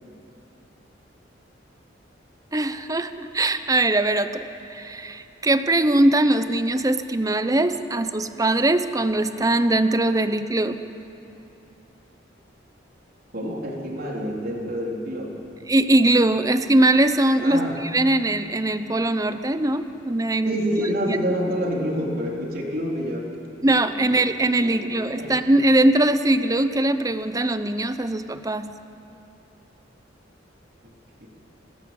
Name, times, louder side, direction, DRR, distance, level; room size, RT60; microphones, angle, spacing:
voice 1, 2.5-10.8 15.7-17.6 17.9-20.5 21.1-21.2 23.6-28.7, right 1 dB, 20° right, 10 dB, 0.8 m, -21 dB
voice 2, 13.3-15.4 17.4-17.8 20.4-23.3 23.9-24.2 24.6-25.3 30.8-30.9 31.2-31.3, equal, 50° right, -1 dB, 3.8 m, -27 dB
25.5 x 19.0 x 8.8 m, 2.8 s
head